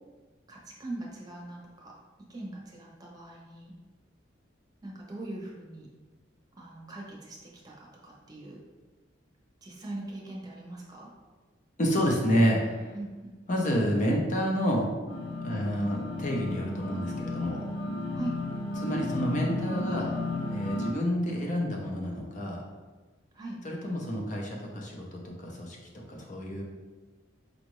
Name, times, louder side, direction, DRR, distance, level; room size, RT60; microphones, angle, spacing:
voice 1, 0.5-1.9 2.3-3.7 4.8-5.9 6.6-8.6 9.6-11.1 12.9-13.3 15.5-15.9 18.1-18.4 23.3-23.6, right 2 dB, 20° right, -3 dB, 0.8 m, -41 dB
voice 2, 11.8-13.0 13.5-14.9 15.4-17.6 18.8-20.1 20.5-22.6 23.6-26.6, equal, 40° left, -1 dB, 0.7 m, -29 dB
sound 1, 15.1-20.9, left 2 dB, 80° left, 0.8 m, -33 dB
5.1 x 2.5 x 3.1 m, 1.3 s
head